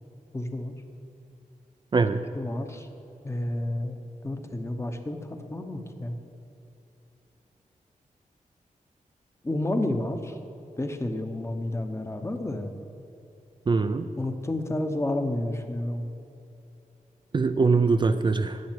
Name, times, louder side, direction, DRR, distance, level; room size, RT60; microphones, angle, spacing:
voice 1, 0.3-0.7 2.3-2.9 3.2-4.0 4.2-6.2 9.4-10.3 10.8-12.7 14.2-16.1, left 1 dB, 20° left, 6 dB, 1.0 m, -30 dB
voice 2, 1.9-2.2 13.7-14.1 17.3-18.6, right 4 dB, 35° right, 9 dB, 0.4 m, -22 dB
12.0 x 8.3 x 9.5 m, 2.8 s
wide cardioid pair, 175°, 14 cm